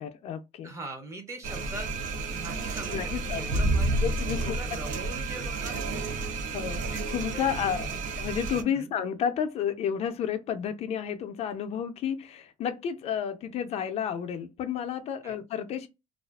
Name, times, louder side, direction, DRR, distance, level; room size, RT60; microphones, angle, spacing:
voice 1, 0.0-0.7 2.9-3.5 4.0-4.6 6.5-7.9 8.2-15.9, left 8 dB, 55° left, 0.4 m, -31 dB
voice 2, 0.6-1.9 2.3-3.9 4.3-5.8 6.9-7.0 7.3-8.0 8.7-8.9 15.2-15.3, right 2 dB, 20° right, 0.6 m, -41 dB
sound 1, 1.4-8.6, right 2 dB, 75° right, 0.5 m, -30 dB
2.4 x 2.3 x 2.2 m
cardioid pair, 140°, 13 cm